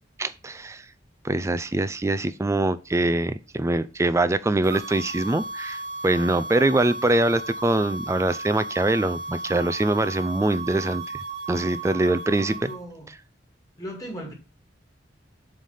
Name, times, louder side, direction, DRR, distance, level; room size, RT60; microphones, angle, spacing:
voice 1, 0.2-0.8 1.2-12.7, right 2 dB, 15° right, 0.4 m, -24 dB
sound 1, 4.6-12.8, right 2 dB, 65° right, 1.0 m, -35 dB
voice 2, 12.5-13.1 13.8-14.3, equal, 20° left, 2.0 m, -37 dB
7.5 x 3.3 x 5.5 m
head